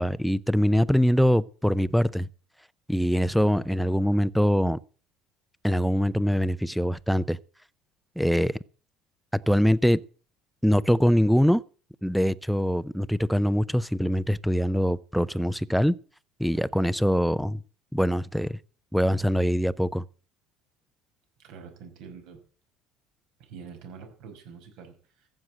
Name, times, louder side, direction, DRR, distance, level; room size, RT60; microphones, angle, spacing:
voice 1, 0.0-2.3 2.9-4.8 5.6-7.4 8.2-8.6 9.5-10.0 10.6-11.6 12.0-16.0 16.4-17.6 17.9-18.6 18.9-20.0, equal, ahead, 0.5 m, -23 dB
voice 2, 21.4-22.4 23.4-25.3, right 6 dB, 70° right, 5.4 m, -45 dB
15.0 x 7.8 x 7.5 m
cardioid pair, 125°, 0 cm